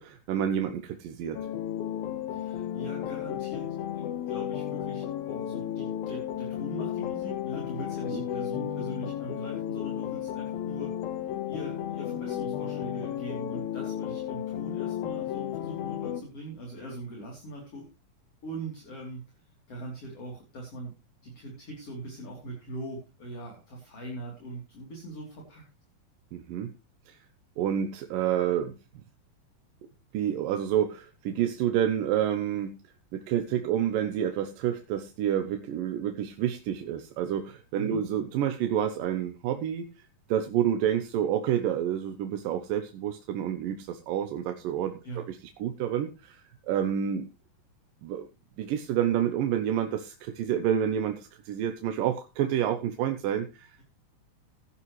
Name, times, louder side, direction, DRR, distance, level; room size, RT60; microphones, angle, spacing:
voice 1, 0.0-1.4 8.1-8.2 26.3-26.7 27.1-27.2 27.6-28.7 30.1-32.7 33.1-39.9 40.3-47.3 48.0-48.3 48.6-53.8, right 10 dB, 75° right, 6 dB, 2.6 m, -29 dB
sound 1, 1.3-16.2, left 11 dB, 85° left, 3.0 m, -33 dB
voice 2, 2.3-3.7 3.9-10.9 11.5-17.8 18.4-19.3 19.7-20.9 21.2-25.6 37.7-38.0 45.0-45.2, right 1 dB, 45° left, -1 dB, 4.1 m, -41 dB
16.5 x 11.5 x 3.2 m, 0.28 s
omnidirectional pair, 4.1 m